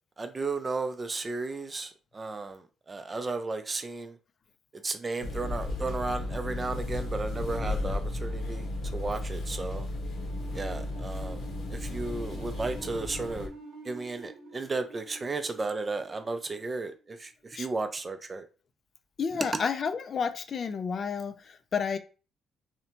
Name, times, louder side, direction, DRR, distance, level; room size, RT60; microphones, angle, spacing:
voice 1, 0.2-4.2 4.7-8.7 8.9-9.9 10.5-11.4 11.7-13.5 13.8-18.4, right 3 dB, 30° right, 0.4 m, -34 dB
sound 1, 5.2-13.5, left 2 dB, 75° left, 0.7 m, -34 dB
sound 2, 10.3-17.1, right 2 dB, 85° right, 0.7 m, -48 dB
voice 2, 19.2-22.0, left 6 dB, 50° left, 0.3 m, -31 dB
2.7 x 2.1 x 2.9 m
cardioid pair, 90°, 0 cm